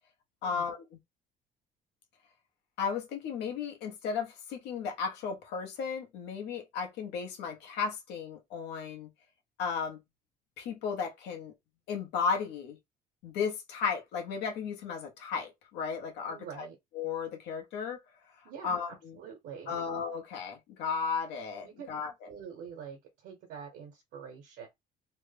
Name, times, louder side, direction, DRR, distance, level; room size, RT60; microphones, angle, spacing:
voice 1, 0.4-0.8 2.8-9.1 9.6-10.0 10.6-11.5 11.9-12.8 13.2-16.7 16.9-18.0 18.6-19.2 19.7-22.1, left 6 dB, 85° left, 1.1 m, -34 dB
voice 2, 16.3-16.7 18.4-19.8 21.6-24.7, right 7 dB, 80° right, 1.2 m, -46 dB
3.1 x 2.2 x 3.4 m
cardioid pair, 110°, 17 cm